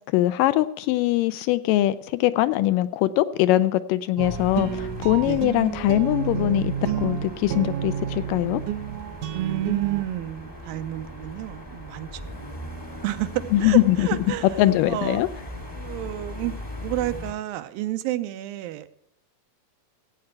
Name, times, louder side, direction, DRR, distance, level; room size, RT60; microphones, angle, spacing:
voice 1, 0.1-8.6 13.5-14.1 14.6-15.3, left 15 dB, 80° left, 14 dB, 2.1 m, -22 dB
sound 1, 4.2-17.3, left 1 dB, 25° left, 0.5 m, -39 dB
sound 2, 4.2-10.0, right 9 dB, 75° right, 2.0 m, -30 dB
voice 2, 9.3-12.3 13.0-15.2 15.8-18.9, right 14 dB, 90° right, 11 dB, 2.5 m, -30 dB
15.5 x 8.6 x 4.5 m, 0.79 s
omnidirectional pair, 4.1 m